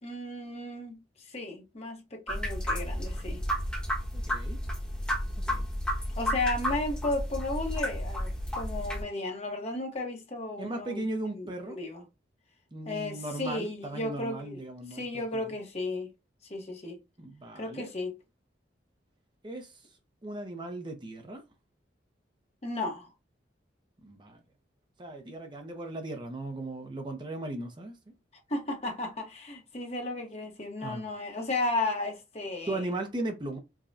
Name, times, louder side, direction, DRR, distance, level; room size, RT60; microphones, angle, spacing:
voice 1, 0.0-0.9 1.3-3.4 6.2-11.0 11.3-12.0 12.9-14.6 14.9-16.1 16.5-17.0 17.6-18.2 22.6-23.1 28.5-32.9, left 2 dB, 35° left, 1.0 m, -34 dB
sound 1, 2.3-9.0, equal, 5° left, 1.0 m, -32 dB
voice 2, 4.1-4.6 5.4-5.7 10.6-11.8 12.7-15.0 15.3-15.5 17.2-17.9 19.4-19.8 20.2-21.4 24.0-24.4 25.0-27.9 30.8-31.1 32.7-33.6, right 2 dB, 25° right, 0.6 m, -37 dB
4.8 x 2.2 x 2.6 m
head